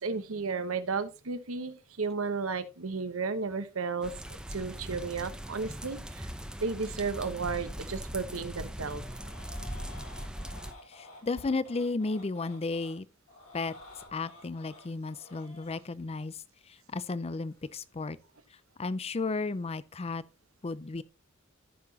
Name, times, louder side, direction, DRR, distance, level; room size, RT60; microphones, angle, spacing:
voice 1, 0.0-4.1 4.5-6.3 6.6-9.0, right 4 dB, 80° right, 1.0 m, -33 dB
sound 1, 4.0-10.7, equal, 5° right, 0.8 m, -40 dB
sound 2, 8.8-13.0 13.3-15.8 17.5-17.8, left 2 dB, 90° left, 4.2 m, -52 dB
voice 2, 10.9-13.1 13.5-13.7 14.1-18.2 18.8-20.2 20.6-21.0, left 3 dB, 30° left, 0.5 m, -34 dB
14.5 x 5.9 x 2.8 m
head